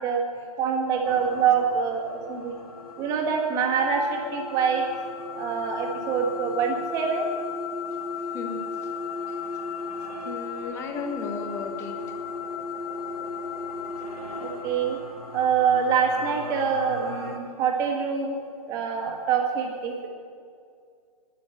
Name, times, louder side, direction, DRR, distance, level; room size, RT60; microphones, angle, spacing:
voice 1, 0.6-2.5 3.0-4.9 5.3-7.3 14.4-15.0 15.3-18.4 18.7-20.1, right 6 dB, 15° right, 1 dB, 1.7 m, -25 dB
sound 1, 1.0-17.4, left 4 dB, 65° left, 2.1 m, -36 dB
voice 2, 10.2-12.0, left 4 dB, 15° left, 5 dB, 1.0 m, -34 dB
12.0 x 9.0 x 8.1 m, 2.3 s
figure-of-eight pair, 135°, 20 cm